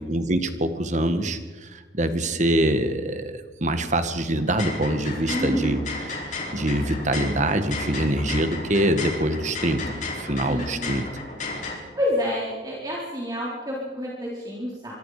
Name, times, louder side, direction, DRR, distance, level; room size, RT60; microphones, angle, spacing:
voice 1, 0.0-5.8 6.1-11.0, right 1 dB, 40° right, 9 dB, 1.8 m, -25 dB
sound 1, 4.4-11.8, left 3 dB, 45° left, 5.3 m, -34 dB
voice 2, 5.2-5.8 10.4-10.8 11.9-14.9, equal, 20° right, -5 dB, 4.2 m, -28 dB
25.5 x 23.5 x 5.1 m, 1.3 s
head